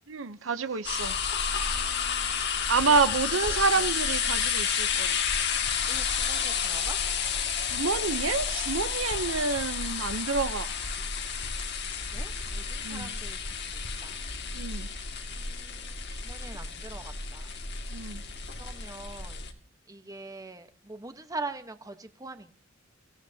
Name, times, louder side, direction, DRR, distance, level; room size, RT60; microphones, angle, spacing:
voice 1, 0.1-1.1 2.5-5.2 7.7-10.7 12.8-13.1 14.5-14.9 17.9-18.2, right 4 dB, 80° right, 0.8 m, -28 dB
sound 1, 0.8-19.5, left 6 dB, 60° left, 2.2 m, -31 dB
voice 2, 1.4-2.4 2.9-3.9 5.9-7.0 11.7-11.8 12.1-13.5 14.0-14.2 14.7-15.0 15.3-17.5 18.5-19.4 19.9-22.5, right 3 dB, 20° right, 1.1 m, -43 dB
26.0 x 16.0 x 2.8 m
head